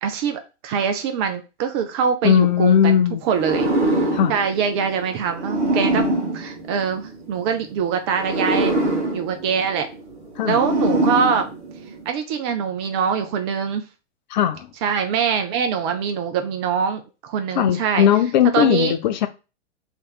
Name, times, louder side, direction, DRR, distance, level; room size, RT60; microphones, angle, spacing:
voice 1, 0.0-3.7 4.3-6.1 6.3-8.9 9.1-9.9 10.4-11.5 12.1-13.8 14.8-18.1 18.5-19.0, right 6 dB, 25° right, 0.4 m, -23 dB
voice 2, 2.2-3.2 4.1-4.3 10.4-10.6 14.3-14.7 17.5-19.3, left 9 dB, 40° left, 0.6 m, -18 dB
sound 1, 3.3-7.4 8.1-12.1, right 1 dB, 40° right, 1.5 m, -24 dB
3.3 x 3.0 x 4.6 m
figure-of-eight pair, 105°, 34 cm